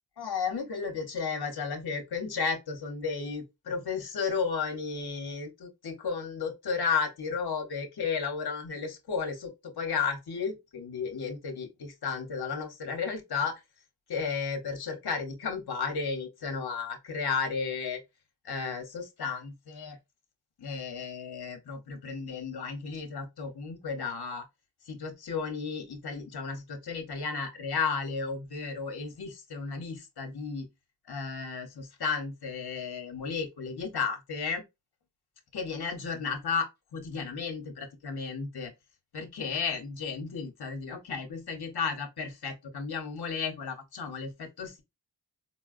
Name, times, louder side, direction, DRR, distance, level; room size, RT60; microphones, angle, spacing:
voice 1, 0.2-13.6 14.1-18.0 18.4-20.0 20.6-24.5 24.9-30.7 31.1-34.6 35.5-38.7 39.1-44.8, left 5 dB, 65° left, 0.8 m, -33 dB
4.2 x 2.2 x 2.4 m
wide cardioid pair, 110°, 42 cm